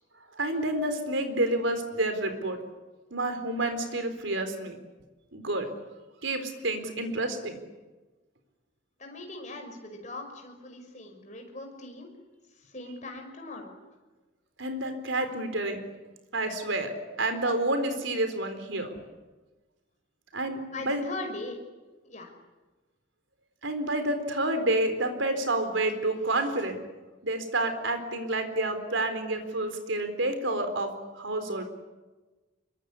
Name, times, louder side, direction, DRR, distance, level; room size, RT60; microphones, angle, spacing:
voice 1, 0.4-2.6 3.1-4.8 5.3-5.7 6.2-7.6 14.6-15.8 16.3-16.9 17.2-19.0 20.3-21.0 23.6-26.8 27.2-31.6, right 2 dB, 75° right, 8 dB, 4.1 m, -29 dB
voice 2, 9.0-12.1 12.6-13.7 20.7-21.6 22.0-22.3, left 2 dB, 35° left, 3 dB, 5.7 m, -40 dB
25.5 x 23.0 x 9.9 m, 1.2 s
head